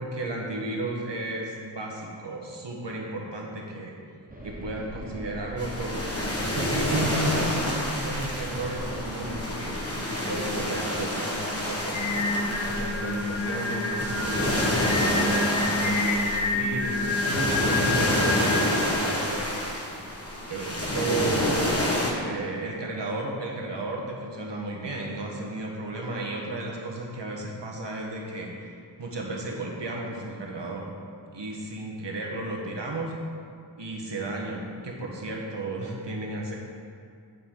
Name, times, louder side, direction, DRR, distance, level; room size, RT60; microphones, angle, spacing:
voice 1, 0.0-4.0 4.4-6.0 6.5-12.1 12.6-14.6 15.0-19.7 20.5-28.7 29.0-31.0 31.3-33.1 33.8-36.5, right 2 dB, 65° right, -1 dB, 1.4 m, -33 dB
sound 1, 4.3-9.5, right 1 dB, 20° right, 1.1 m, -40 dB
sound 2, 5.6-22.1, left 1 dB, 30° left, 1.3 m, -28 dB
Singing, 11.9-19.0, left 2 dB, 80° left, 1.0 m, -28 dB
8.7 x 6.9 x 3.8 m, 2.2 s
wide cardioid pair, 75°, 46 cm